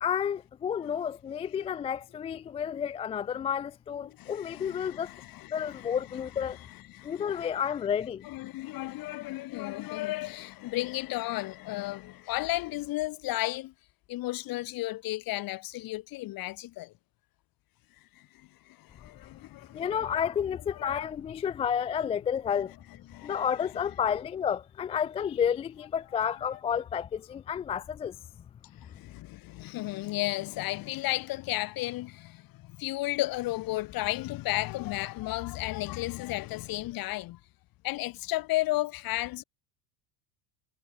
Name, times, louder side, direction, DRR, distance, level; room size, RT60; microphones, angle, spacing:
voice 1, 0.0-5.1 5.5-6.6 7.0-8.2 19.7-22.7 23.2-28.2, left 8 dB, 15° left, 0.4 m, -31 dB
voice 2, 4.0-6.0 6.9-7.5 8.2-13.7 14.1-16.9 18.7-20.2 20.8-21.0 23.1-23.5 28.8-37.4 37.8-39.4, left 18 dB, 45° left, 4.9 m, -34 dB
cardioid pair, 160°, 50 cm